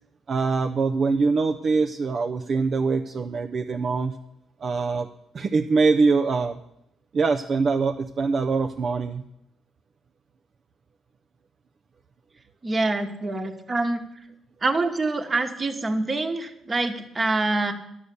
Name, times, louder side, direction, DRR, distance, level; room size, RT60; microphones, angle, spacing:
voice 1, 0.3-4.2 4.6-5.1 5.3-6.6 7.1-9.2, right 4 dB, 50° right, 5 dB, 0.6 m, -23 dB
voice 2, 12.6-14.1 14.6-17.7, right 2 dB, 30° right, 7 dB, 1.4 m, -25 dB
11.0 x 6.6 x 8.4 m, 0.79 s
cardioid pair, 90°, 0 cm